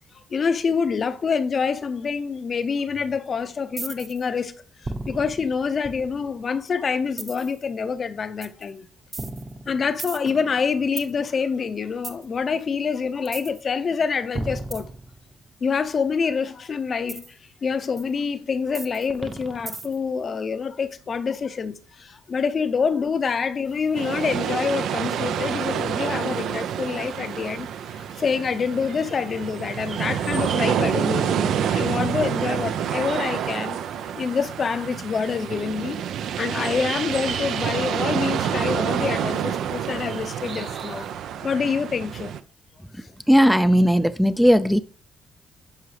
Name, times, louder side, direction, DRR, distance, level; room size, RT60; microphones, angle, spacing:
voice 1, 0.3-4.5 4.8-8.9 9.7-14.9 15.6-17.2 17.6-33.8 34.2-36.0 36.4-41.1 41.4-42.3, left 5 dB, 45° left, 0.6 m, -26 dB
sound 1, 3.8-4.3 4.8-6.4 7.2-7.6 8.4-8.6 9.1-11.1 12.0-12.3 13.3-13.6 14.4-15.5 17.1-17.3 18.0-18.1 18.7-20.1, right 2 dB, 30° right, 0.9 m, -35 dB
sound 2, 23.6-41.1, right 4 dB, 50° right, 2.3 m, -45 dB
sound 3, 24.0-42.4, right 9 dB, 75° right, 0.5 m, -28 dB
voice 2, 43.3-44.8, equal, ahead, 0.4 m, -17 dB
11.5 x 4.7 x 3.2 m
cardioid pair, 90°, 0 cm